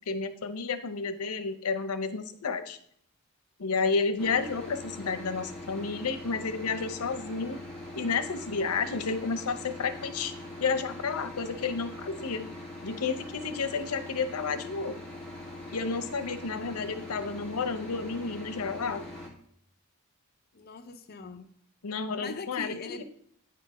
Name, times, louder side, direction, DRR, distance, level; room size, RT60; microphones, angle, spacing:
voice 1, 0.1-2.8 3.6-7.6 8.0-10.3 10.6-12.5 12.8-14.9 15.7-19.0 21.8-23.0, left 4 dB, 90° left, 0.7 m, -31 dB
sound 1, 4.2-19.3, left 1 dB, 5° left, 1.7 m, -42 dB
voice 2, 20.5-21.5 22.2-23.0, left 4 dB, 45° left, 0.5 m, -41 dB
9.1 x 3.9 x 5.5 m
head